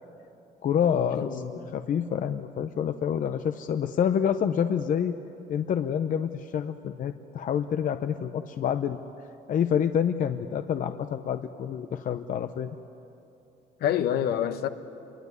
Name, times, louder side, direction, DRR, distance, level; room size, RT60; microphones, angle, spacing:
voice 1, 0.6-1.4 1.7-5.2 5.5-9.0 9.5-12.8, left 8 dB, 50° left, 0.9 m, -27 dB
voice 2, 1.2-1.7 13.8-14.7, left 10 dB, 70° left, 1.3 m, -27 dB
27.0 x 23.0 x 9.7 m
cardioid pair, 110°, 17 cm